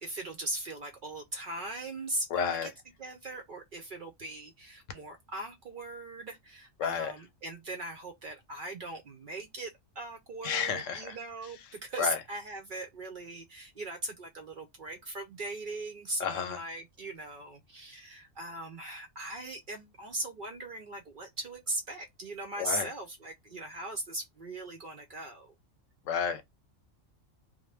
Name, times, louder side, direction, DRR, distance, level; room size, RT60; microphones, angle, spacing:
voice 1, 0.0-2.7 3.0-9.7 10.0-25.5, right 2 dB, 55° right, 0.6 m, -39 dB
voice 2, 2.3-2.7 6.8-7.1 10.4-11.1 12.0-12.2 16.2-16.6 22.6-22.9 26.1-26.4, left 7 dB, 85° left, 1.0 m, -31 dB
2.5 x 2.1 x 3.1 m
omnidirectional pair, 1.3 m